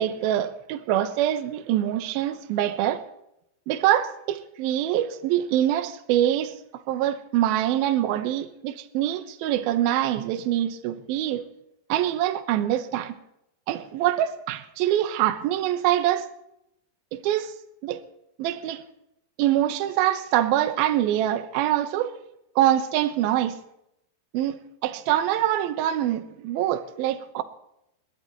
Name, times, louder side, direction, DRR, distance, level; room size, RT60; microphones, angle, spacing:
voice 1, 0.0-3.0 3.7-6.6 6.9-11.4 11.9-13.1 13.7-16.3 17.1-17.5 17.8-18.0 18.4-18.8 19.4-22.1 22.6-23.6 24.3-27.4, right 12 dB, 70° right, 2.6 m, -24 dB
29.5 x 12.0 x 3.1 m
omnidirectional pair, 5.1 m